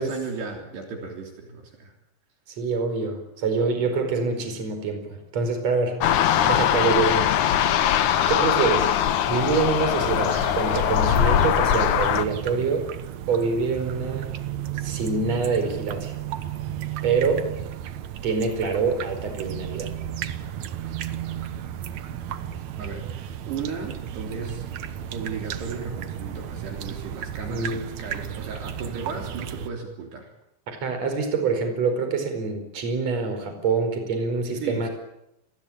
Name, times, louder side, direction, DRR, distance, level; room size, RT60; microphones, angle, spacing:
voice 1, 0.0-1.9 8.4-8.7 22.8-24.7 25.1-30.3 34.6-34.9, right 5 dB, 65° right, 2 dB, 5.4 m, -35 dB
voice 2, 2.6-6.0 6.4-7.3 8.3-8.9 9.3-12.9 13.3-14.3 14.8-16.2 17.0-17.5 18.2-19.9 27.5-27.9 30.7-34.9, right 4 dB, 35° right, 7 dB, 5.6 m, -25 dB
sound 1, 6.0-12.2, left 10 dB, 90° left, 1.7 m, -21 dB
sound 2, 10.0-29.7, right 10 dB, 85° right, 1.6 m, -34 dB
29.5 x 21.5 x 8.7 m, 0.82 s
omnidirectional pair, 5.3 m